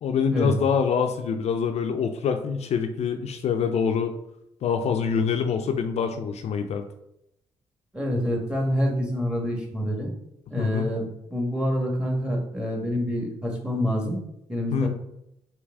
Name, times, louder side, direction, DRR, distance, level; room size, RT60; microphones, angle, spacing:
voice 1, 0.0-4.2 4.6-6.8 10.6-10.9 14.7-14.9, left 6 dB, 65° left, 6 dB, 0.4 m, -25 dB
voice 2, 7.9-10.1 10.5-14.2 14.5-14.9, equal, 10° right, 0 dB, 1.6 m, -27 dB
4.6 x 2.9 x 3.6 m, 0.81 s
supercardioid pair, 60°, 12 cm